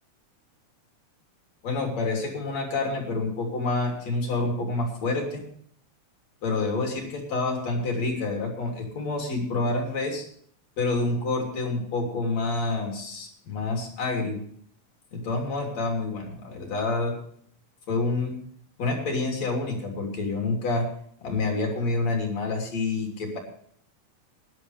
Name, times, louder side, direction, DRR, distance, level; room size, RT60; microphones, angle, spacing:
voice 1, 1.6-5.4 6.4-10.3 10.8-14.4 15.1-17.1 17.9-18.3 18.8-20.9 21.2-23.4, left 3 dB, 60° left, 1 dB, 4.3 m, -28 dB
20.5 x 11.5 x 3.3 m, 0.62 s
omnidirectional pair, 3.5 m